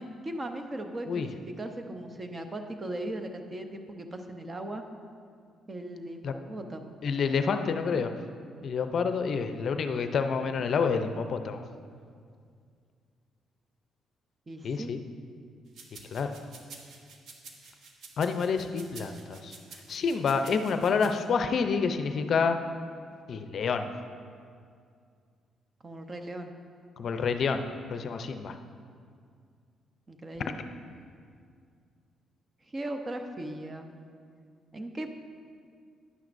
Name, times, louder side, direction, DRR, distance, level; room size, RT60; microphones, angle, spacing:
voice 1, 0.0-4.8 5.7-6.9 14.5-14.9 25.8-26.5 30.1-30.6 32.7-33.9 34.7-35.1, right 1 dB, 30° right, 6 dB, 0.7 m, -38 dB
voice 2, 7.0-8.1 8.6-11.6 14.6-15.0 15.9-16.3 18.2-19.6 19.9-22.6 23.3-23.9 27.0-27.6 27.9-28.6, left 5 dB, 55° left, 8 dB, 0.5 m, -28 dB
sound 1, 15.7-21.1, right 4 dB, 70° right, 1.0 m, -49 dB
11.0 x 9.2 x 2.6 m, 2.2 s
cardioid pair, 90°, 0 cm